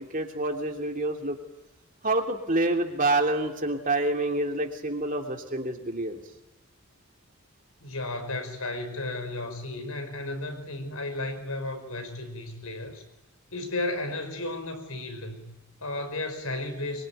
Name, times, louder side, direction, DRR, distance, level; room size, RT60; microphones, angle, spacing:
voice 1, 0.0-1.3 2.0-6.2, right 2 dB, 35° right, 3 dB, 3.1 m, -27 dB
voice 2, 7.8-13.0 13.5-17.1, left 2 dB, 75° left, 6 dB, 5.5 m, -34 dB
25.0 x 23.5 x 9.4 m, 1.1 s
head